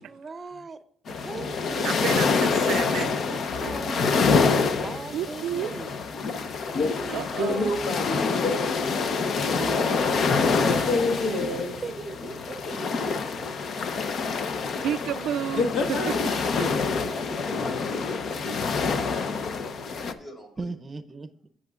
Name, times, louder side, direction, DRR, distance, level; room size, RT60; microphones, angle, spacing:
voice 1, 0.1-0.8 1.1-1.9 3.3-6.1 6.7-7.9 9.5-14.0 16.0-16.2 16.6-16.7 20.6-21.5, right 4 dB, 30° right, 0.7 m, -39 dB
sound 1, 1.1-20.1, left 5 dB, 60° left, 0.9 m, -26 dB
voice 2, 1.7-3.2 5.1-5.7 7.1-7.7 14.8-16.1, right 10 dB, 80° right, 0.3 m, -30 dB
voice 3, 7.4-8.7 10.8-11.7 15.5-16.7, left 3 dB, 80° left, 1.6 m, -27 dB
voice 4, 17.0-20.7, left 1 dB, 35° left, 4.8 m, -43 dB
16.5 x 7.4 x 2.5 m
cardioid pair, 90°, 0 cm